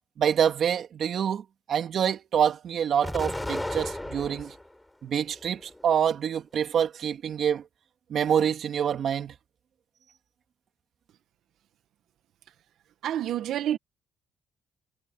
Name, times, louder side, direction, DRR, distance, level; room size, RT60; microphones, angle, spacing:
voice 1, 0.2-1.4 1.7-4.5 5.0-7.6 8.1-9.3, right 8 dB, 60° right, 2.6 m, -26 dB
Explosion, 3.0-4.7 5.2-6.1, left 1 dB, 10° left, 5.8 m, -34 dB
voice 2, 13.0-13.8, right 11 dB, 75° right, 1.5 m, -28 dB
cardioid pair, 90°, 0 cm